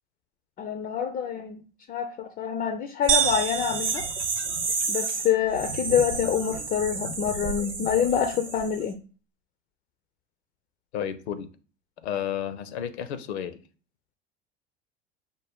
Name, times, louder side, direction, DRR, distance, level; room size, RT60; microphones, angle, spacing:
voice 1, 0.6-1.6 1.9-4.1 4.9-9.0, left 8 dB, 25° left, 0.3 m, -26 dB
sound 1, 3.0-8.8, right 4 dB, 90° right, 0.9 m, -31 dB
sound 2, 3.1-5.0, right 8 dB, 30° right, 0.7 m, -28 dB
voice 2, 10.9-11.5 12.0-13.6, left 9 dB, 75° left, 0.6 m, -32 dB
5.3 x 2.0 x 3.4 m
hypercardioid pair, 80°, 33 cm